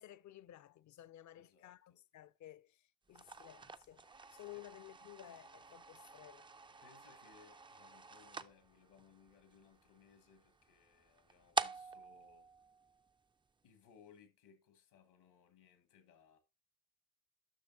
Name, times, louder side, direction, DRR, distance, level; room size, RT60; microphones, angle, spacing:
voice 1, 0.0-6.5, left 13 dB, 45° left, 0.5 m, -55 dB
voice 2, 1.3-2.0 4.5-4.7 6.8-12.5 13.6-16.4, left 7 dB, 75° left, 1.5 m, -65 dB
sound 1, 3.1-13.5, right 4 dB, 15° right, 0.3 m, -47 dB
9.9 x 6.1 x 2.7 m
hypercardioid pair, 55°, 40 cm